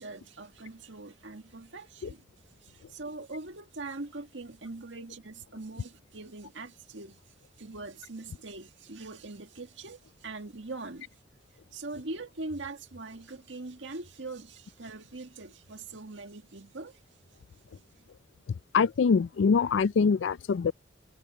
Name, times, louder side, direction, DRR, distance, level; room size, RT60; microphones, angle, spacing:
voice 1, 0.0-7.2 7.6-11.1 11.7-17.0 17.7-17.8, right 3 dB, 90° right, 1.8 m, -42 dB
voice 2, 18.7-20.7, left 5 dB, 85° left, 0.4 m, -24 dB
head